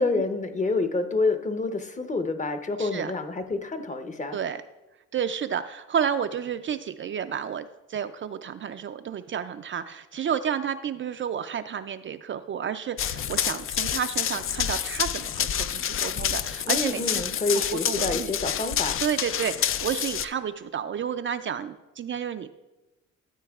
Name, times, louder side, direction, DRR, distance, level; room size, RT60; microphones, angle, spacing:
voice 1, 0.0-4.4 16.6-19.0, left 3 dB, 25° left, 8 dB, 0.8 m, -28 dB
voice 2, 2.8-3.1 4.3-4.6 5.1-17.2 17.5-18.3 19.0-22.5, right 8 dB, 40° right, 10 dB, 0.4 m, -31 dB
Run, 13.0-20.2, left 9 dB, 45° left, 0.4 m, -28 dB
13.0 x 8.5 x 2.4 m, 1.0 s
cardioid pair, 90°, 30 cm